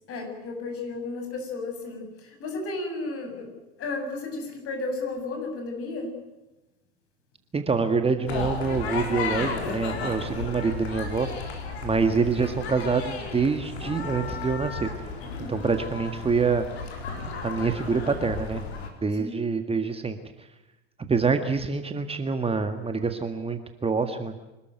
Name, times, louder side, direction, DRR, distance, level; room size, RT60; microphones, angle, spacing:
voice 1, 0.1-3.5 3.8-6.1 15.2-15.5 19.2-19.4, left 3 dB, 40° left, 4 dB, 7.9 m, -33 dB
voice 2, 7.5-11.3 11.8-15.1 15.5-16.7 17.4-18.6 19.0-20.5 21.1-24.3, right 4 dB, 15° right, 8 dB, 1.8 m, -26 dB
sound 1, 8.3-18.9, left 4 dB, 75° left, 4.4 m, -34 dB
26.5 x 13.5 x 9.2 m, 1.0 s
hypercardioid pair, 80°, 33 cm